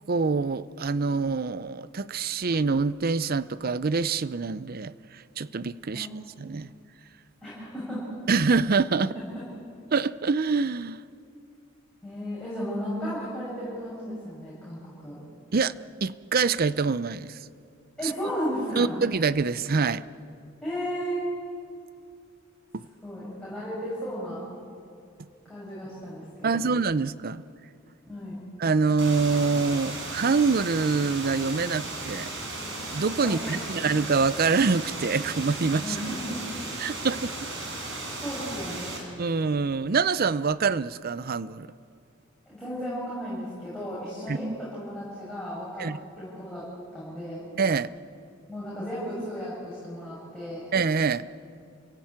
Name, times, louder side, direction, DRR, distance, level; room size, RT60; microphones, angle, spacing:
voice 1, 0.1-4.9 5.4-6.1 6.4-6.7 8.3-9.1 9.9-11.0 15.5-15.7 16.0-17.4 18.0-18.1 18.8-20.0 22.7-22.9 26.4-27.4 28.6-32.3 32.9-35.8 36.8-37.5 39.2-41.7 44.3-44.4 45.8-46.0 47.6-47.9 50.7-51.2, right 4 dB, 50° right, 0.6 m, -25 dB
voice 2, 7.4-8.1 9.0-9.1 12.0-15.2 18.0-19.0 20.6-21.2 23.0-24.4 25.5-26.7 28.1-28.4 33.2-33.8 35.8-36.4 37.0-37.1 38.2-39.0 42.5-45.9 46.1-46.6 46.9-47.4 48.5-50.7, equal, 5° left, 7.1 m, -34 dB
sound 1, 29.0-39.0, right 2 dB, 70° right, 5.4 m, -36 dB
29.5 x 16.5 x 8.9 m
head